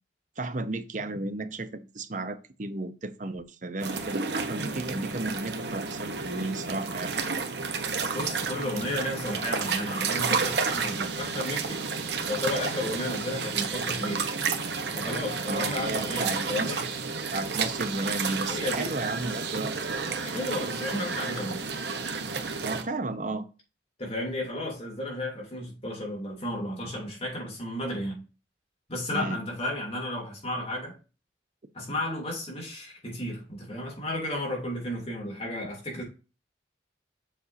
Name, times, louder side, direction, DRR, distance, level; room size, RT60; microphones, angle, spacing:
voice 1, 0.4-7.1 15.5-16.9 17.3-19.7 22.6-23.5 29.1-29.4, right 2 dB, 45° right, 0.7 m, -33 dB
sound 1, 3.8-22.8, right 5 dB, 65° right, 1.0 m, -31 dB
voice 2, 8.1-11.9 12.3-14.3 14.9-16.8 18.5-18.9 20.2-21.6 23.2-23.3 24.0-28.2 28.9-31.0 31.7-36.0, left 1 dB, 35° left, 3.1 m, -33 dB
7.2 x 5.4 x 2.7 m
head